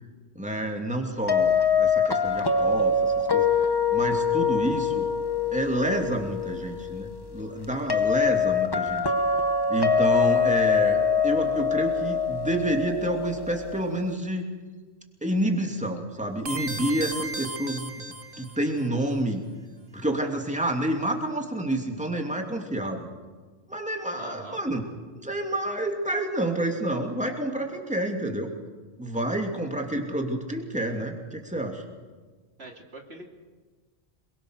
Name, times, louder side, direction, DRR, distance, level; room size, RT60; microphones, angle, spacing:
voice 1, 0.3-5.1 5.5-9.0 9.7-14.4 15.2-17.9 18.3-19.4 19.9-23.1 23.7-24.8 25.2-28.5 29.0-31.8, right 1 dB, 5° right, 2 dB, 2.8 m, -29 dB
sound 1, 1.3-14.1, left 5 dB, 25° left, 1.1 m, -24 dB
sound 2, 16.4-18.8, right 2 dB, 55° right, 1.5 m, -35 dB
voice 2, 24.2-24.6 32.6-33.3, right 2 dB, 75° right, 2 dB, 3.0 m, -42 dB
26.5 x 23.0 x 6.6 m, 1.4 s
omnidirectional pair, 1.1 m